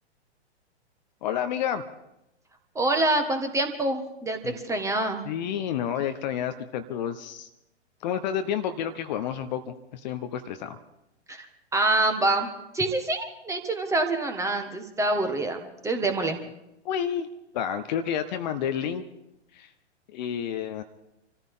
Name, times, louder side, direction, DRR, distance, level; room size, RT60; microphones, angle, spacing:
voice 1, 1.2-1.8 4.4-4.6 5.2-7.5 8.0-10.8 16.8-17.3 17.5-19.0 19.5-19.7 20.1-20.8, left 9 dB, 40° left, 9 dB, 0.9 m, -30 dB
voice 2, 2.7-5.3 11.3-11.5 11.7-16.4, right 2 dB, 10° right, 6 dB, 1.7 m, -26 dB
26.5 x 14.5 x 3.7 m, 0.89 s
figure-of-eight pair, 115°, 34 cm